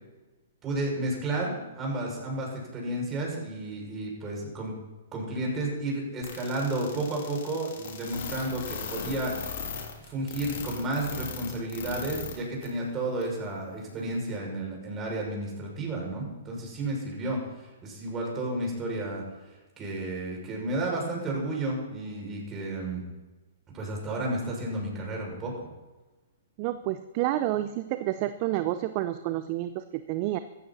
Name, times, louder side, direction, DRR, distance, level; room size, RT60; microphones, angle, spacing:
voice 1, 0.6-4.7 5.1-9.6 10.0-19.2 19.8-23.0 23.7-25.5, right 2 dB, 20° right, -1 dB, 6.2 m, -32 dB
sound 1, 6.2-12.4 12.6-12.7 13.2-13.3, left 7 dB, 55° left, 3.4 m, -38 dB
voice 2, 26.6-30.4, right 14 dB, 40° right, 12 dB, 0.6 m, -29 dB
15.0 x 14.5 x 4.2 m, 1.2 s
hypercardioid pair, 120°, 0 cm